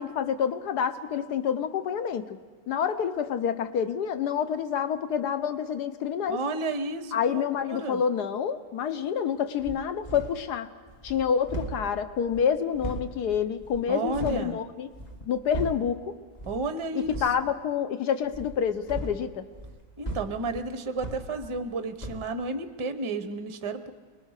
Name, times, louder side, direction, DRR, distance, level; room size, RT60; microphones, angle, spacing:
voice 1, 0.0-2.4 2.7-6.4 7.1-10.7 11.0-14.9 15.3-16.2 16.9-19.5, left 8 dB, 65° left, 10 dB, 1.4 m, -28 dB
voice 2, 6.3-8.0 13.9-14.6 16.5-17.2 20.0-23.9, right 3 dB, 25° right, 9 dB, 0.6 m, -32 dB
sound 1, 9.6-10.5 10.9-14.5 14.9-16.0 16.3-16.7 17.0-17.4 18.3-21.7 22.0-22.3, right 2 dB, 25° left, 1.6 m, -38 dB
24.5 x 21.0 x 6.5 m, 1.4 s
omnidirectional pair, 2.0 m